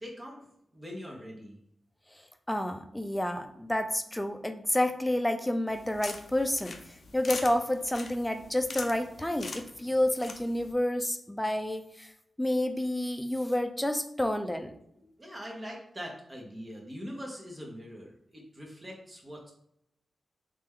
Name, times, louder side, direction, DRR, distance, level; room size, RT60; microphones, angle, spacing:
voice 1, 0.0-1.6 15.0-19.5, equal, 30° right, -1 dB, 1.1 m, -43 dB
voice 2, 2.5-6.7 7.1-12.1 12.4-14.7, left 1 dB, 10° left, 6 dB, 0.5 m, -29 dB
sound 1, 5.7-10.7, left 4 dB, 65° left, 0.4 m, -43 dB
3.3 x 2.9 x 3.6 m, 0.75 s
cardioid pair, 45°, 0 cm